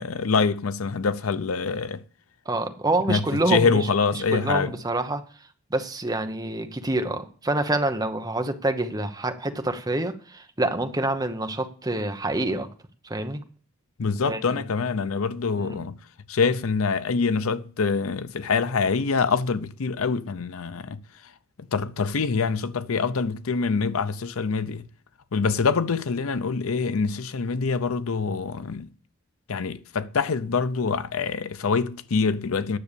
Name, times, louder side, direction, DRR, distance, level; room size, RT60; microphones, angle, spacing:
voice 1, 0.0-2.0 3.1-4.7 14.0-16.0 16.3-21.0 21.7-24.9 25.3-28.9 29.5-32.8, left 5 dB, 85° left, 0.6 m, -25 dB
voice 2, 2.5-3.9 4.1-5.2 5.7-12.7 13.0-13.4 14.2-14.4 15.6-15.8, right 2 dB, 20° right, 0.9 m, -27 dB
9.7 x 6.6 x 6.8 m
head